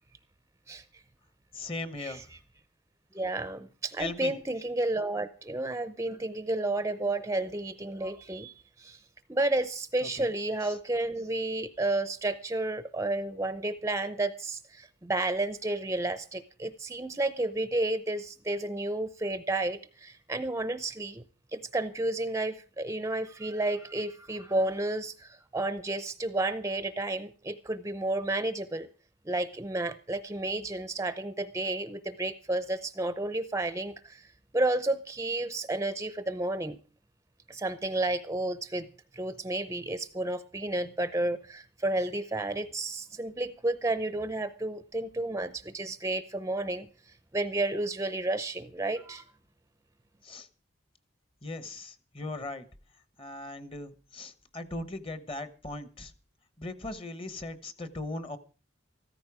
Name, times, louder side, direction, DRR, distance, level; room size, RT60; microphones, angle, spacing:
voice 1, 1.5-2.2 4.0-4.3 10.0-10.3 10.6-10.7 50.2-50.5 51.4-52.6 53.2-56.1 56.6-58.4, left 2 dB, 30° left, 12 dB, 1.1 m, -38 dB
voice 2, 3.1-9.0 9.3-21.2 21.5-28.9 29.3-34.3 34.5-36.8 37.5-38.9 39.1-46.9 47.3-49.2, right 2 dB, 15° right, 13 dB, 0.6 m, -31 dB
14.0 x 14.0 x 4.9 m, 0.37 s
head